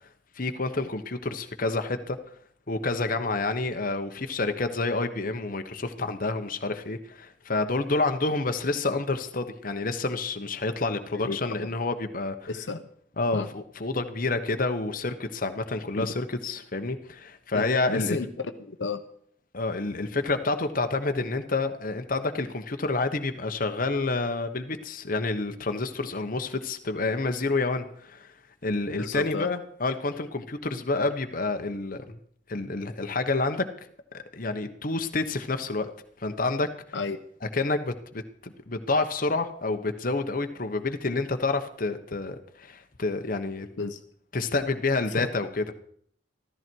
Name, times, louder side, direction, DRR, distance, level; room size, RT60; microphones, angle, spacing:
voice 1, 0.4-2.2 2.7-12.5 13.2-18.2 19.5-28.3 28.6-32.2 32.5-33.7 34.1-35.9 36.2-36.7 37.4-43.7 44.3-45.7, left 3 dB, 50° left, 7 dB, 1.1 m, -28 dB
voice 2, 11.1-11.5 12.5-12.9 13.3-13.5 15.9-16.1 17.5-19.0 29.0-29.5 36.9-37.2 43.8-44.0 45.2-45.3, left 3 dB, 80° left, 7 dB, 0.9 m, -32 dB
14.0 x 14.0 x 4.6 m, 0.63 s
head